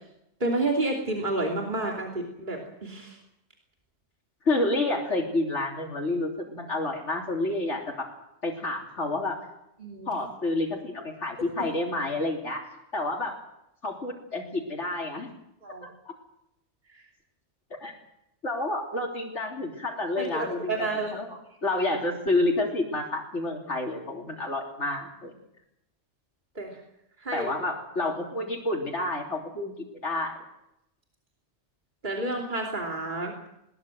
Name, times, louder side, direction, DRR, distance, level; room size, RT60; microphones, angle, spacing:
voice 1, 0.4-3.2 9.8-10.1 15.6-15.9 20.2-21.1 26.5-26.8 27.2-27.5 32.0-33.3, right 2 dB, 40° right, 0 dB, 3.2 m, -30 dB
voice 2, 4.5-8.1 8.4-9.4 10.1-13.4 13.8-15.3 15.8-15.9 17.8-17.9 18.4-25.3 27.3-29.7 30.0-30.4, left 2 dB, 80° left, -1 dB, 3.7 m, -29 dB
21.5 x 20.0 x 7.8 m, 0.81 s
omnidirectional pair, 1.2 m